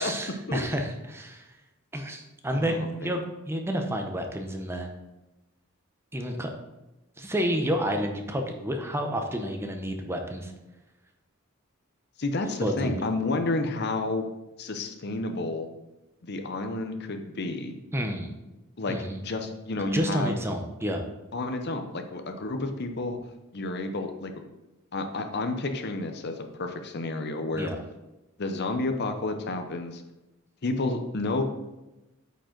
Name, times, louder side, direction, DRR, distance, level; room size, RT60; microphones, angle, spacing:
voice 1, 0.0-1.5 1.9-4.9 6.1-6.5 7.2-10.5 12.6-13.0 17.9-18.3 18.9-19.2 19.9-21.0 27.5-27.8, equal, 10° right, 4 dB, 0.7 m, -30 dB
voice 2, 2.5-3.2 12.2-14.3 14.6-15.7 16.2-17.8 18.8-19.0 19.2-20.4 21.3-23.2 23.5-24.3 24.9-27.7 28.4-30.0 30.6-31.4, left 2 dB, 50° left, 6 dB, 0.7 m, -30 dB
8.6 x 5.2 x 3.9 m, 1.0 s
head